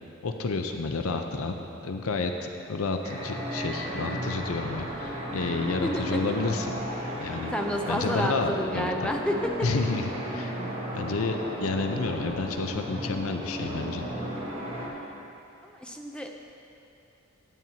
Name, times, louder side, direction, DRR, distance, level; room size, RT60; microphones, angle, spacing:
voice 1, 0.2-1.5 1.8-6.7 7.2-7.5 7.9-9.1 9.6-10.5 10.9-14.0, left 3 dB, 75° left, 5 dB, 0.6 m, -30 dB
sound 1, 3.0-14.9, equal, 30° right, 1.3 m, -34 dB
voice 2, 5.8-6.2 7.5-9.7 15.6-16.3, equal, 5° left, 2 dB, 0.5 m, -30 dB
15.0 x 9.0 x 2.8 m, 2.8 s
head